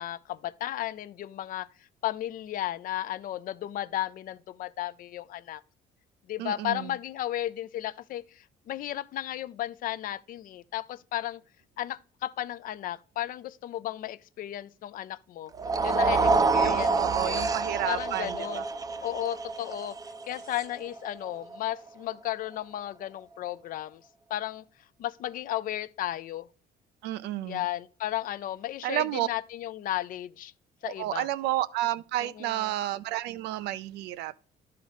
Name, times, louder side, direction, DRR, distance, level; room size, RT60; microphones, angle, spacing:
voice 1, 0.0-1.7 2.0-5.6 6.3-11.4 11.8-15.5 15.8-17.5 17.9-18.6 19.0-20.0 20.3-24.0 24.3-24.6 25.0-26.5 27.5-30.5 30.8-31.3 32.2-32.7, left 13 dB, 55° left, 0.4 m, -34 dB
voice 2, 6.4-6.9 16.6-18.6 27.0-27.6 28.8-29.3 30.8-34.4, right 14 dB, 85° right, 0.4 m, -31 dB
sound 1, 15.5-21.8, right 4 dB, 20° right, 0.5 m, -28 dB
11.0 x 3.8 x 5.1 m
cardioid pair, 110°, 17 cm